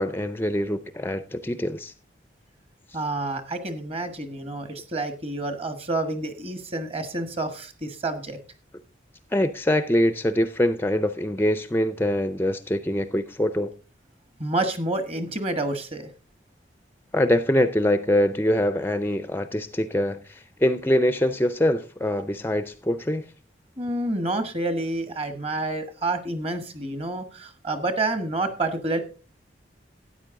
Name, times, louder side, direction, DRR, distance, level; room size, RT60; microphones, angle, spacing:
voice 1, 0.0-1.9 9.3-13.7 17.1-23.3, left 1 dB, 10° left, 0.4 m, -24 dB
voice 2, 2.9-8.4 14.4-16.1 23.8-29.0, right 2 dB, 35° right, 1.3 m, -28 dB
13.0 x 9.4 x 3.7 m
head